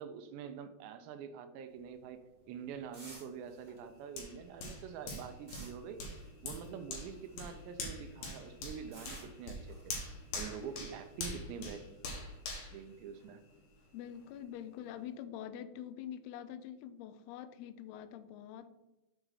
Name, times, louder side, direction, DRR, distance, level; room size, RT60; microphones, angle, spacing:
voice 1, 0.0-6.0 6.4-9.9 10.3-11.8 12.7-13.4, right 7 dB, 80° right, 8 dB, 2.8 m, -46 dB
sound 1, 1.7-7.7 8.0-11.4, right 1 dB, 60° right, 0.4 m, -57 dB
Hands, 4.2-13.7 14.1-14.3, left 2 dB, 60° left, 2.8 m, -44 dB
voice 2, 13.9-18.7, left 10 dB, 80° left, 12 dB, 2.3 m, -45 dB
7.3 x 6.4 x 4.8 m, 1.0 s
omnidirectional pair, 5.0 m